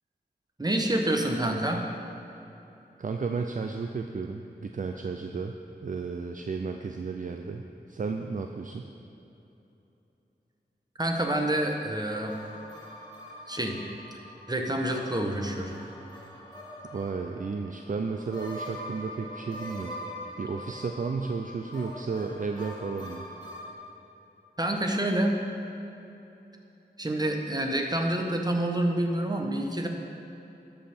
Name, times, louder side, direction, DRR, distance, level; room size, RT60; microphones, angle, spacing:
voice 1, 0.6-1.8 11.0-12.3 13.5-13.8 14.5-15.8 24.6-25.4 27.0-29.9, right 1 dB, 20° right, 2 dB, 1.0 m, -27 dB
voice 2, 3.0-5.5 5.8-7.6 7.9-8.9 16.9-19.9 20.4-23.2, right 4 dB, 50° right, 4 dB, 0.4 m, -33 dB
sound 1, 12.1-23.7, left 1 dB, 25° left, 1.4 m, -43 dB
13.0 x 5.6 x 4.3 m, 2.9 s
wide cardioid pair, 60°, 18 cm